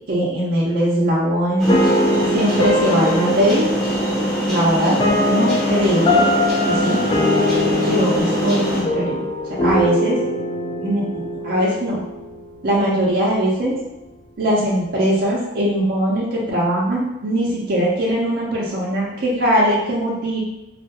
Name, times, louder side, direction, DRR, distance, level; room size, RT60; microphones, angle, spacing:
voice 1, 0.1-1.8 2.3-3.7 4.4-5.0 5.2-6.3 6.7-7.0 7.9-9.2 9.6-10.2 10.8-12.0 12.6-13.8 14.4-20.4, equal, 55° right, -5 dB, 0.5 m, -20 dB
sound 1, 1.6-8.8, equal, ahead, 0.8 m, -23 dB
sound 2, 1.7-12.8, left 1 dB, 30° left, 0.4 m, -22 dB
2.3 x 2.2 x 2.8 m, 0.95 s
head